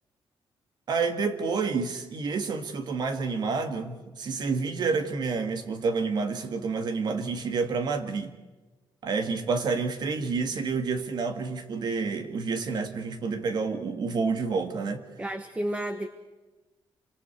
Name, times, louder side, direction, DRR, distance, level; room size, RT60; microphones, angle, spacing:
voice 1, 0.9-8.4 9.0-15.0, right 4 dB, 50° right, 7 dB, 2.0 m, -29 dB
voice 2, 15.2-16.1, right 1 dB, 15° right, 8 dB, 1.1 m, -31 dB
28.5 x 25.5 x 4.7 m, 1.2 s
cardioid pair, 150°, 9 cm